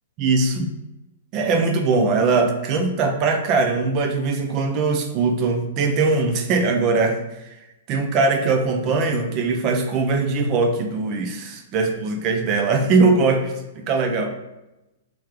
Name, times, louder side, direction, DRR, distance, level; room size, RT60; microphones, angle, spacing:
voice 1, 0.2-0.7 1.3-7.2 7.9-14.3, right 3 dB, 35° right, 5 dB, 0.5 m, -21 dB
3.2 x 3.1 x 3.6 m, 0.96 s
hypercardioid pair, 120°, 0 cm